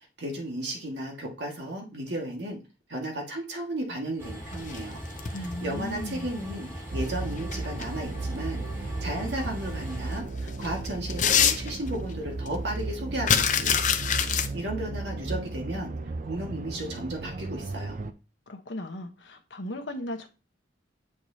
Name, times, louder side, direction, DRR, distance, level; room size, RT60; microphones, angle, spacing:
voice 1, 0.2-2.6 2.9-5.0 5.3-13.8 14.2-15.9 16.2-18.0, right 1 dB, 70° right, 1.9 m, -34 dB
Train, 4.2-10.2, equal, 15° right, 2.5 m, -39 dB
sound 1, 4.5-5.5 7.2-7.8 8.4-8.5 9.8-9.9 10.2-12.1 12.5-12.6 12.7-14.5, left 8 dB, 45° left, 0.6 m, -25 dB
voice 2, 5.3-6.3 18.5-20.3, left 1 dB, 80° left, 1.1 m, -36 dB
sound 2, 6.9-18.1, right 3 dB, 45° right, 0.5 m, -35 dB
8.5 x 4.8 x 2.8 m
head